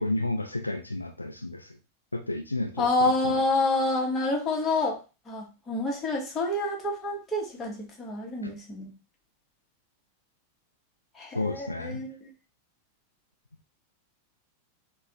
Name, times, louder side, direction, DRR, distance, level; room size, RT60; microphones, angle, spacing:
voice 1, 0.0-1.8 2.1-3.4 8.4-8.5 11.3-12.0, left 2 dB, 85° left, 6 dB, 0.3 m, -32 dB
voice 2, 2.8-5.0 5.3-8.9 11.2-12.3, left 2 dB, 20° left, 0 dB, 1.3 m, -28 dB
3.8 x 2.3 x 2.9 m, 0.29 s
figure-of-eight pair, 90°, 0 cm